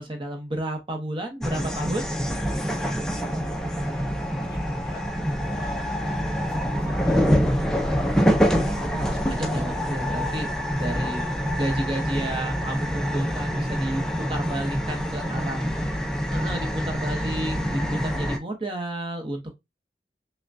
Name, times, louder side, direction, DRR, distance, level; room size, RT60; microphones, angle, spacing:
voice 1, 0.0-2.1 8.5-10.5 10.8-11.2 11.6-15.6 16.3-19.5, right 1 dB, 30° right, 0.8 m, -32 dB
sound 1, 1.4-18.4, equal, 5° left, 0.4 m, -26 dB
voice 2, 3.7-6.2 6.7-8.1 9.6-9.9 10.7-11.6 15.6-16.3 17.2-17.5 18.2-18.3, left 1 dB, 20° left, 1.2 m, -49 dB
5.6 x 2.2 x 2.5 m
head